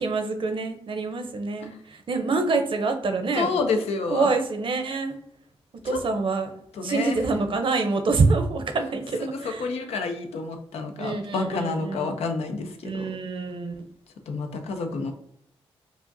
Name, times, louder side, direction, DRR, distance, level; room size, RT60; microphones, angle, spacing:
voice 1, 0.0-3.5 4.1-5.2 5.8-6.5 6.8-9.7 11.0-12.2 12.8-13.7, right 3 dB, 55° right, 7 dB, 0.7 m, -26 dB
voice 2, 3.3-4.3 5.8-6.0 6.7-7.3 9.2-13.2 14.3-15.1, left 4 dB, 90° left, 5 dB, 0.6 m, -29 dB
4.8 x 2.4 x 2.6 m, 0.72 s
cardioid pair, 75°, 10 cm